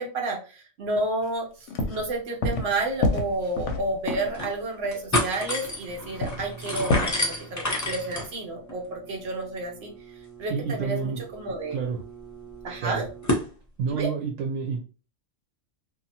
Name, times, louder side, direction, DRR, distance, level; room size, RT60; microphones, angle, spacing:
voice 1, 0.0-9.9 10.4-11.8 12.6-13.0 13.9-14.1, right 2 dB, 60° right, 1 dB, 0.9 m, -30 dB
sound 1, 1.2-1.3 1.7-2.1 2.4-2.7 3.0-4.4 5.4-5.5 5.7-5.8 6.2-7.1, left 2 dB, 65° left, 0.8 m, -27 dB
sound 2, 3.1-3.2 3.5-3.6 4.1-4.5 4.8-13.5, left 1 dB, 30° left, 0.3 m, -32 dB
voice 2, 10.5-11.2 11.7-12.0 12.8-13.0 13.8-14.8, right 5 dB, 90° right, 3 dB, 1.0 m, -29 dB
2.7 x 2.3 x 2.7 m, 0.35 s
omnidirectional pair, 1.3 m